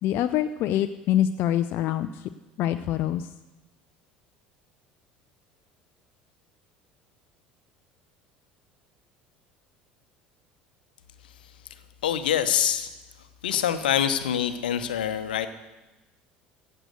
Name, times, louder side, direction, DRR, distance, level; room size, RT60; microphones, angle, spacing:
voice 1, 0.0-2.3 2.6-3.3, left 11 dB, 50° left, 9 dB, 0.5 m, -25 dB
voice 2, 12.0-12.9 13.4-15.5, left 9 dB, 75° left, 10 dB, 0.9 m, -25 dB
15.0 x 7.8 x 6.4 m, 1.1 s
figure-of-eight pair, 65°, 5 cm